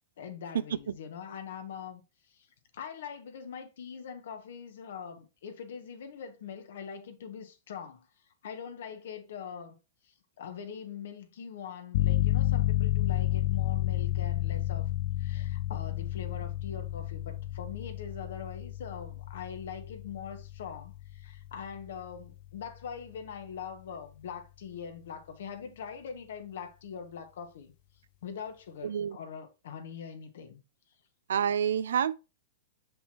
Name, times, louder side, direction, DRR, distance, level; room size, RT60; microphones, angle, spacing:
voice 1, 0.2-2.0 2.3-2.5 2.7-8.1 8.4-9.8 10.1-14.9 15.2-27.7 28.2-30.6, left 7 dB, 75° left, 1.5 m, -42 dB
sound 1, 11.9-22.5, left 14 dB, 55° left, 0.4 m, -31 dB
voice 2, 28.8-29.2 31.3-32.1, right 8 dB, 85° right, 0.5 m, -28 dB
6.1 x 5.4 x 2.9 m
hypercardioid pair, 135°, 0 cm